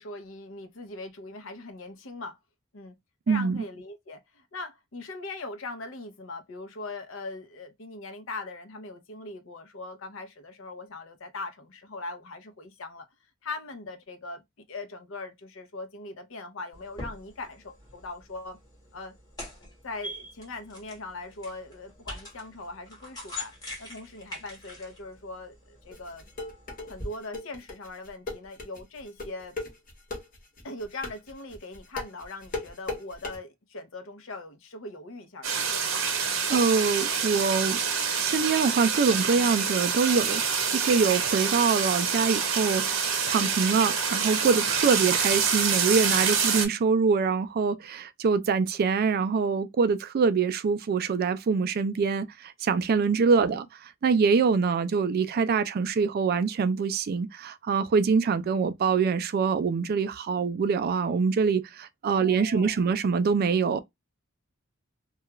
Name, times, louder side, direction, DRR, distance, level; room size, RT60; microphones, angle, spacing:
voice 1, 0.0-2.4 2.7-3.0 3.3-13.1 13.4-14.4 14.7-18.6 18.9-19.1 19.8-23.5 23.8-26.2 26.9-29.6 30.6-35.6 53.4-53.6 62.1-62.8, left 2 dB, 70° left, 0.7 m, -40 dB
voice 2, 3.3-3.6 36.0-37.8 38.2-40.4 40.7-63.8, right 5 dB, 45° right, 0.3 m, -25 dB
sound 1, 16.7-27.1, left 1 dB, 20° left, 1.2 m, -44 dB
sound 2, 25.9-33.4, left 3 dB, 45° left, 0.9 m, -37 dB
sound 3, 35.4-46.7, right 6 dB, 75° right, 0.8 m, -26 dB
2.3 x 2.3 x 2.9 m
head